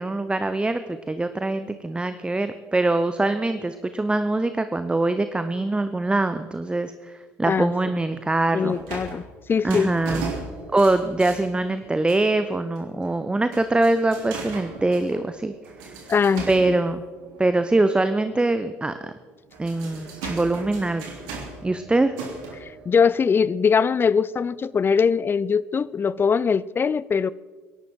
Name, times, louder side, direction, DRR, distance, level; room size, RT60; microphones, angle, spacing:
voice 1, 0.0-8.8 9.6-10.3 10.7-15.5 15.8-16.0 16.5-17.0 17.4-19.1 19.6-21.1 21.6-22.1, right 2 dB, 10° right, 0.8 m, -23 dB
voice 2, 7.4-7.9 8.5-9.2 9.5-9.9 16.1-16.8 22.6-27.3, left 6 dB, 25° left, 0.4 m, -22 dB
sound 1, 8.2-12.5 12.8-13.2 13.5-17.7 18.2-18.3 19.3-24.2 24.7-24.8, right 4 dB, 60° right, 3.2 m, -38 dB
24.5 x 11.5 x 4.5 m
figure-of-eight pair, 60°, 9 cm